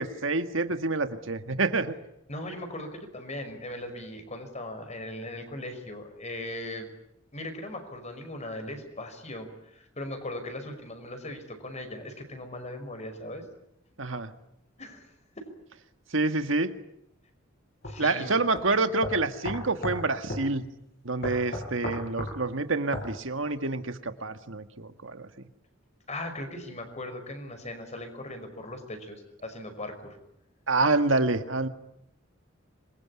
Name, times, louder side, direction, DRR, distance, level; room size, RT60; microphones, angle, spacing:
voice 1, 0.0-1.9 14.0-14.3 16.1-16.7 18.0-20.6 21.0-25.3 30.7-31.7, right 3 dB, 70° right, 9 dB, 1.8 m, -27 dB
voice 2, 2.3-6.9 7.3-13.4 14.8-15.1 15.4-15.5 17.8-18.4 26.1-30.2, left 1 dB, 35° left, 7 dB, 5.6 m, -39 dB
sound 1, 17.8-18.0 18.5-18.6 19.0-20.0 20.3-20.5 21.2-22.4 22.9-23.1, left 1 dB, 50° left, 6.0 m, -34 dB
26.5 x 22.5 x 9.8 m, 0.78 s
head